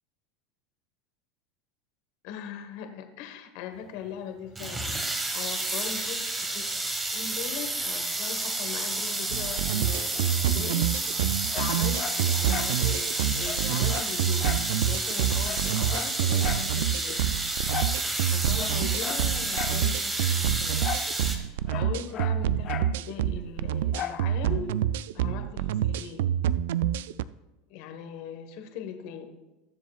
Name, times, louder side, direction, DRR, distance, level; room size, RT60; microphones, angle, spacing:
voice 1, 2.2-6.6 7.1-10.9 11.5-14.5 14.8-17.2 18.2-20.9 21.7-24.8 25.1-26.2 27.7-29.3, left 8 dB, 65° left, 6 dB, 1.4 m, -40 dB
sound 1, 4.6-21.4, right 2 dB, 15° right, 1.5 m, -30 dB
sound 2, 9.3-27.2, right 10 dB, 80° right, 0.3 m, -27 dB
Dog, 11.5-12.8 13.1-13.2 13.4-14.7 15.0-15.1 15.4-16.7 17.7-18.0 18.5-19.8 20.8-21.1 21.4-23.0 23.9-24.3 24.7-24.8, left 10 dB, 40° left, 0.6 m, -36 dB
20.5 x 7.3 x 2.4 m, 1.0 s
supercardioid pair, 130°, 0 cm